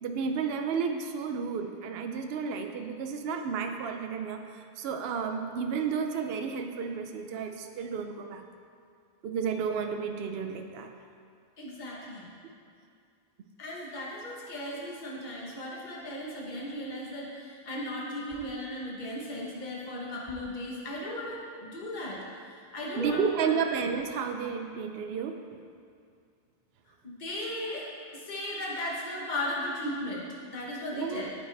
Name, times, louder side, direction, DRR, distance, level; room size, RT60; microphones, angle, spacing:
voice 1, 0.0-8.4 9.2-10.9 23.0-25.4 31.0-31.3, right 6 dB, 75° right, 5 dB, 0.8 m, -32 dB
voice 2, 11.6-12.3 13.6-23.5 27.0-27.9 28.1-31.3, left 1 dB, 50° left, -4 dB, 1.4 m, -36 dB
9.0 x 8.7 x 3.3 m, 2.3 s
omnidirectional pair, 1.0 m